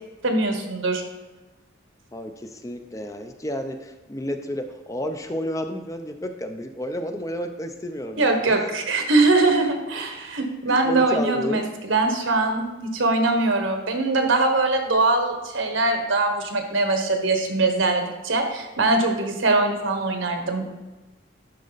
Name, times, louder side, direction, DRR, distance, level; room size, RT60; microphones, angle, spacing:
voice 1, 0.2-1.0 8.2-20.6, right 2 dB, 80° right, 5 dB, 1.2 m, -22 dB
voice 2, 2.1-8.6 10.7-11.6, equal, 15° left, 6 dB, 0.5 m, -31 dB
11.5 x 4.2 x 4.0 m, 1.1 s
head